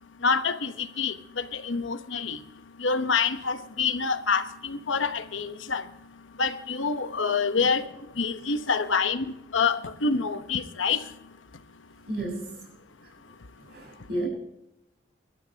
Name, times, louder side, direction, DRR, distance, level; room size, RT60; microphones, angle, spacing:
voice 1, 0.2-2.4 2.8-5.8 6.4-7.8 8.2-9.2 9.5-11.0, left 5 dB, 90° left, 10 dB, 1.0 m, -26 dB
voice 2, 12.1-12.5 13.6-14.3, right 1 dB, 55° right, -1 dB, 6.1 m, -32 dB
24.0 x 12.5 x 2.9 m, 0.92 s
head